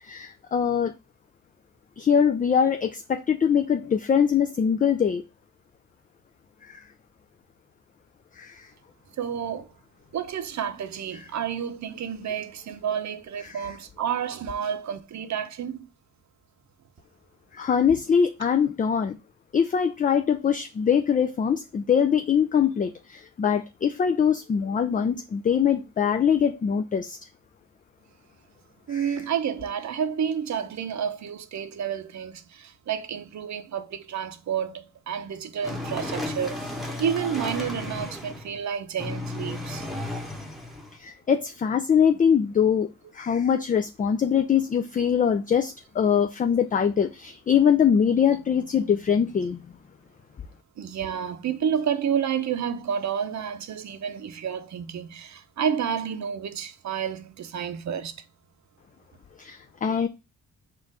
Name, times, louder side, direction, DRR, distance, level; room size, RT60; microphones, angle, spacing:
voice 1, 0.1-0.9 2.0-5.2 6.7-6.8 8.4-8.6 13.4-13.7 17.5-19.2 19.5-27.2 28.9-29.1 41.0-42.9 43.2-49.6 59.4-60.1, left 7 dB, 25° left, 0.3 m, -23 dB
voice 2, 9.2-9.7 10.1-15.9 28.9-39.8 50.8-58.1, right 8 dB, 55° right, 0.7 m, -30 dB
sound 1, 35.6-38.6 39.0-41.0, left 1 dB, ahead, 1.0 m, -34 dB
4.5 x 2.5 x 4.7 m
cardioid pair, 70°, 33 cm